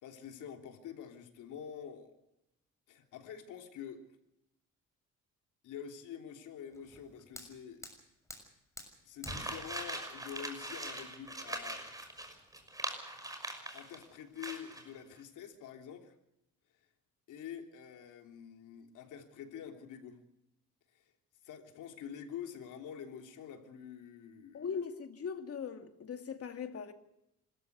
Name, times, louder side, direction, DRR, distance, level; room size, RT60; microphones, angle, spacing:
voice 1, 0.0-2.2 2.9-4.1 5.6-7.9 9.0-11.8 13.7-16.1 17.3-20.2 20.9-21.0 21.4-24.7, left 8 dB, 85° left, 3.4 m, -47 dB
Fire, 6.7-12.7, left 1 dB, 10° left, 6.6 m, -51 dB
sound 1, 9.3-14.0 14.4-14.9, right 1 dB, 10° right, 6.0 m, -41 dB
voice 2, 24.5-26.9, left 6 dB, 50° left, 2.6 m, -40 dB
27.0 x 14.0 x 8.1 m
cardioid pair, 90°, 30 cm